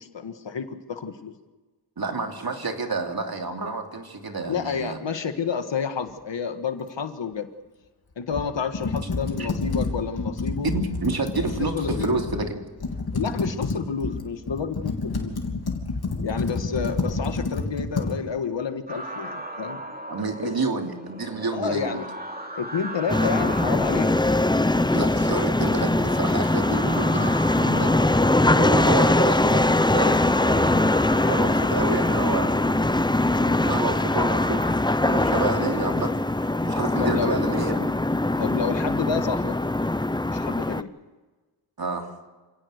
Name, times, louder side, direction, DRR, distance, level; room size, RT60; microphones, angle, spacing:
voice 1, 0.0-1.4 4.5-7.5 8.2-10.7 11.6-12.1 13.1-15.4 16.2-19.8 20.4-20.6 21.5-22.1 22.6-24.1 35.3-35.4 37.0-37.4 38.4-39.6 40.3-40.9, left 6 dB, 80° left, 8 dB, 1.7 m, -30 dB
voice 2, 2.0-5.0 9.4-9.5 10.6-12.6 19.7-19.8 20.1-22.0 24.9-28.2 28.5-32.9 33.4-34.7 35.0-37.9 41.8-42.1, right 3 dB, 55° right, 3 dB, 3.0 m, -29 dB
Computer keyboard, 8.3-12.5 12.8-18.1, left 3 dB, 60° left, 3.1 m, -29 dB
sound 1, 18.9-34.8, right 1 dB, 20° right, 2.7 m, -37 dB
sound 2, 23.1-40.8, left 2 dB, 10° left, 0.7 m, -22 dB
27.5 x 17.5 x 6.6 m, 1.3 s
cardioid pair, 60°, 43 cm